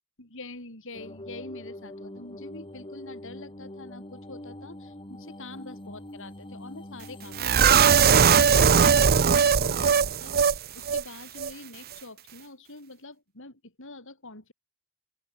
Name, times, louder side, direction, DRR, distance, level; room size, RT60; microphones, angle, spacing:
voice 1, 0.2-14.5, left 2 dB, 65° left, 6.1 m, -45 dB
sound 1, 0.9-8.1, left 1 dB, 25° left, 3.6 m, -43 dB
sound 2, 7.4-10.6 10.9-11.0 11.4-11.5, right 6 dB, 45° right, 0.7 m, -19 dB
open air
head